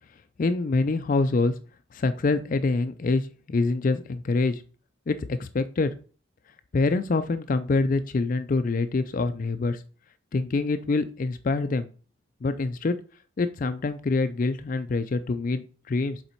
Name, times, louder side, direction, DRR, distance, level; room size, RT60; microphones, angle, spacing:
voice 1, 0.4-1.5 1.9-4.6 5.1-5.9 6.7-9.8 10.3-11.9 12.4-12.9 13.4-16.2, left 3 dB, 40° left, 10 dB, 0.4 m, -25 dB
6.8 x 4.1 x 4.4 m, 0.38 s
head